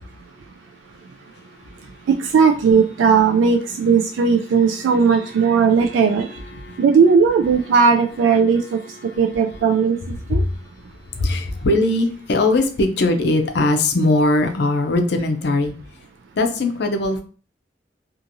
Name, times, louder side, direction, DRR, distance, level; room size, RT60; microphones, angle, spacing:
voice 1, 2.2-6.3 6.8-8.8 9.2-10.0 10.3-10.4, right 5 dB, 90° right, 0.3 m, -16 dB
voice 2, 11.2-15.7 16.3-17.2, left 2 dB, 60° left, 0.5 m, -20 dB
2.8 x 2.5 x 2.6 m
head